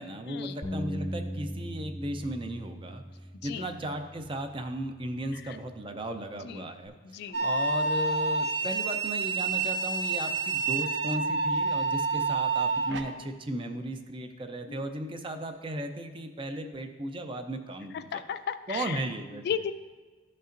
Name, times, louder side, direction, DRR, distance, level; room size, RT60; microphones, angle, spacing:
voice 1, 0.0-3.0 3.4-18.2 18.7-19.4, right 1 dB, 30° right, 6 dB, 0.5 m, -36 dB
Bass guitar, 0.6-6.9, equal, 20° left, 0.7 m, -41 dB
voice 2, 7.0-7.5 12.1-12.2 14.7-14.8 16.6-16.7 18.1-19.0 19.4-19.7, left 8 dB, 60° left, 12 dB, 0.3 m, -35 dB
sound 1, 7.3-13.0, right 3 dB, 75° right, 0.6 m, -28 dB
12.5 x 5.4 x 2.5 m, 1.3 s
head